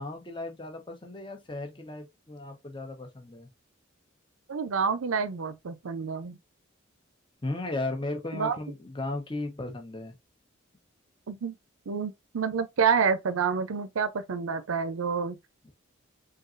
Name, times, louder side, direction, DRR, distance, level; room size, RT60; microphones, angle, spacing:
voice 1, 0.0-3.5 7.4-10.2, left 2 dB, 25° left, 0.9 m, -35 dB
voice 2, 4.5-6.4 8.3-8.6 11.3-11.5 11.9-15.4, right 6 dB, 90° right, 0.5 m, -28 dB
3.8 x 3.8 x 2.5 m
head